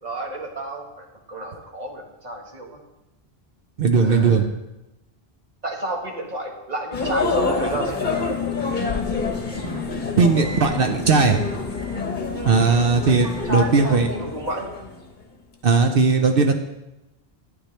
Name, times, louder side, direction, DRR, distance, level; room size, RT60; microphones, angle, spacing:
voice 1, 0.0-2.8 3.9-4.4 5.6-8.1 12.3-12.6 13.1-14.7, right 1 dB, 40° right, 0 dB, 1.6 m, -31 dB
voice 2, 3.8-4.4 10.2-11.4 12.5-14.1 15.6-16.5, right 4 dB, 65° right, 5 dB, 0.9 m, -18 dB
sound 1, 6.9-15.2, left 4 dB, 50° left, 1.2 m, -27 dB
12.0 x 9.4 x 3.3 m, 0.97 s
omnidirectional pair, 1.1 m